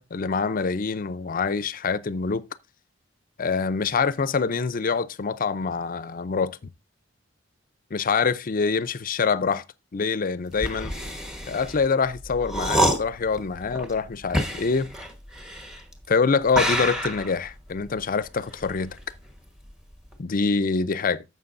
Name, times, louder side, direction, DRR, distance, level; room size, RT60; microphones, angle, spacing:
voice 1, 0.0-2.4 3.4-6.6 7.9-9.6 9.9-10.9 11.5-14.9 16.1-19.0 20.2-21.2, left 5 dB, 45° left, 0.5 m, -25 dB
sound 1, 10.5-16.1 16.5-19.4 19.7-20.1, equal, 5° right, 1.3 m, -28 dB
11.5 x 7.4 x 2.6 m
head